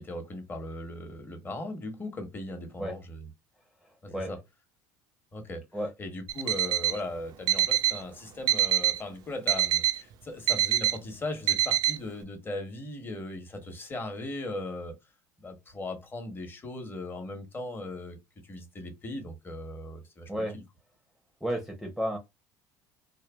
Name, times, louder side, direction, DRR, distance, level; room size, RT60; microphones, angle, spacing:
voice 1, 0.0-3.3 4.0-4.4 5.3-5.6 6.0-14.9 15.4-18.2 18.4-20.6, left 2 dB, 25° left, 1.1 m, -38 dB
voice 2, 3.8-4.3 5.7-5.9 20.3-20.6 21.4-22.2, equal, ahead, 0.7 m, -32 dB
Alarm, 6.3-7.0 7.5-8.0 8.5-9.0 9.5-10.0 10.5-11.0 11.5-12.0, right 12 dB, 55° right, 0.5 m, -25 dB
3.2 x 2.3 x 2.2 m
supercardioid pair, 90°, 9 cm